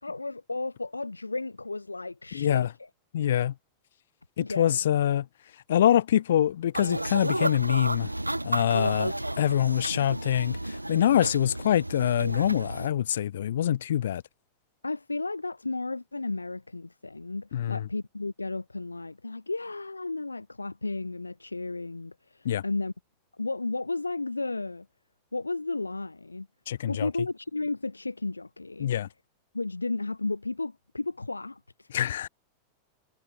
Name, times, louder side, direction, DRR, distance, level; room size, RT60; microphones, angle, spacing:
voice 1, 0.0-2.9 4.4-4.8 9.5-9.7 14.8-22.9 23.3-24.9 25.3-26.5 26.9-28.9 29.5-31.9, left 3 dB, 80° left, 3.3 m, -33 dB
voice 2, 2.3-2.7 3.1-3.5 4.4-5.3 5.7-8.1 8.4-14.2 17.5-17.9 22.4-22.6 26.7-27.1 28.8-29.1 31.9-32.3, left 11 dB, 60° left, 5.5 m, -25 dB
sound 1, 6.7-12.9, right 1 dB, 85° right, 1.7 m, -32 dB
figure-of-eight pair, 90°, 0 cm